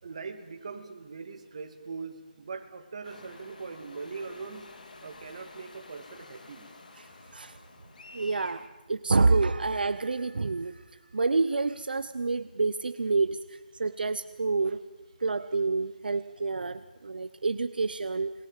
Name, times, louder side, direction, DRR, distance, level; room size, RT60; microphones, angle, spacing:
voice 1, 0.0-6.7, right 4 dB, 40° right, 6 dB, 2.3 m, -41 dB
sound 1, 3.0-8.7, left 3 dB, 60° left, 3.3 m, -50 dB
voice 2, 8.1-10.8 11.1-14.8 15.2-18.3, right 3 dB, 75° right, 13 dB, 0.9 m, -28 dB
28.0 x 20.5 x 7.4 m, 1.2 s
hypercardioid pair, 170°, 5 cm